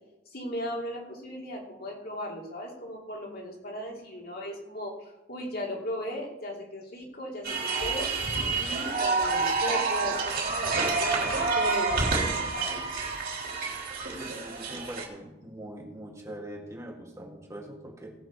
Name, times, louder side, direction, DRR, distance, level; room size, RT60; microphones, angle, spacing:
voice 1, 0.3-8.1 8.6-12.8, equal, 55° left, -2 dB, 2.8 m, -37 dB
sound 1, 7.4-15.1, right 4 dB, 55° right, 3.2 m, -28 dB
voice 2, 14.2-18.1, right 1 dB, 15° right, 0 dB, 1.8 m, -42 dB
18.0 x 7.7 x 4.7 m, 0.99 s
head